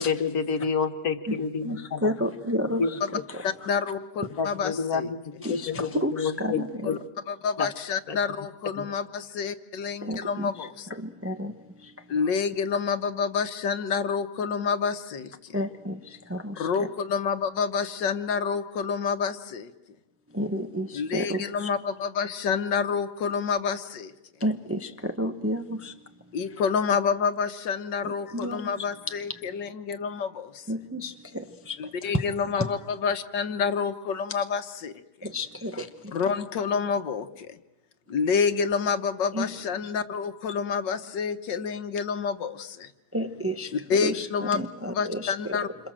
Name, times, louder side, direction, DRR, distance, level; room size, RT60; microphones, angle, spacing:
voice 1, 0.0-2.1 2.8-3.0 4.4-7.0 7.6-7.7 8.1-8.2 8.8-8.9, left 5 dB, 55° left, 8 dB, 1.8 m, -29 dB
voice 2, 1.6-2.9 3.3-3.7 5.4-6.9 10.0-11.5 11.8-12.3 15.5-16.9 20.3-21.7 24.4-25.9 28.0-28.8 30.7-32.2 32.6-32.7 35.2-36.1 39.3-39.5 43.1-45.6, equal, 10° right, 6 dB, 0.8 m, -31 dB
voice 3, 3.4-5.1 6.8-7.0 7.3-10.9 12.1-15.3 16.6-19.7 20.9-24.1 26.3-30.5 31.8-34.9 36.1-37.5 38.1-42.9 43.9-44.6 44.9-45.7, left 6 dB, 75° left, 9 dB, 1.8 m, -28 dB
28.0 x 26.5 x 7.6 m, 1.0 s
omnidirectional pair, 1.9 m